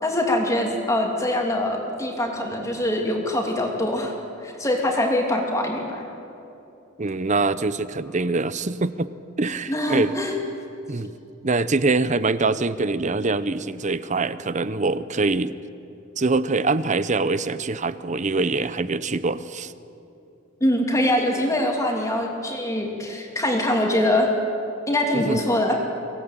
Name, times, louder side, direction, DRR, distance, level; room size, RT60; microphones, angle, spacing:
voice 1, 0.0-4.2 4.4-6.0 9.7-10.3 20.6-24.3 24.9-25.7, left 1 dB, 15° left, 1 dB, 2.8 m, -23 dB
voice 2, 7.0-9.1 9.4-10.1 10.9-11.1 11.4-15.5 16.2-19.7 25.1-25.4, right 3 dB, 40° right, 15 dB, 0.8 m, -24 dB
24.5 x 17.5 x 9.0 m, 2.9 s
head